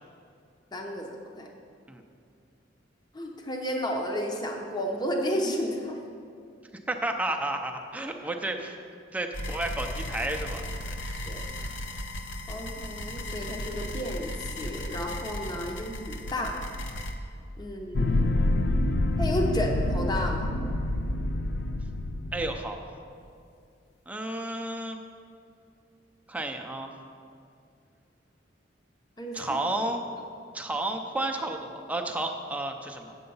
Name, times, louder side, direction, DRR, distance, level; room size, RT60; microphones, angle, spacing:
voice 1, 0.7-1.5 3.1-6.0 11.2-11.4 12.5-16.5 17.6-18.4 19.2-20.5 29.2-29.5, equal, 20° left, 1 dB, 0.8 m, -32 dB
voice 2, 6.9-8.8 9.1-10.6 15.6-15.7 22.3-23.0 24.1-25.0 26.3-26.9 29.3-30.0 30.5-33.1, right 2 dB, 10° right, 3 dB, 0.5 m, -32 dB
sound 1, 9.3-17.1, left 1 dB, 75° left, 0.8 m, -36 dB
sound 2, 18.0-22.6, left 2 dB, 60° left, 0.4 m, -27 dB
8.8 x 6.8 x 5.4 m, 2.4 s
head